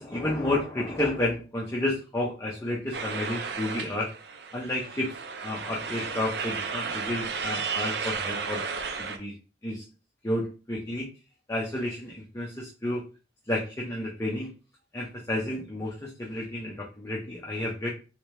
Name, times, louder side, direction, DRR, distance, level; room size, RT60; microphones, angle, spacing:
voice 1, 0.0-4.1 4.5-5.1 5.4-8.7 9.0-9.3 9.6-9.8 10.2-11.1 11.5-13.0 13.5-14.5 14.9-17.9, left 1 dB, 15° left, -3 dB, 0.6 m, -31 dB
sound 1, 2.9-9.2, right 5 dB, 70° right, 0.5 m, -33 dB
3.2 x 2.8 x 3.2 m, 0.33 s
head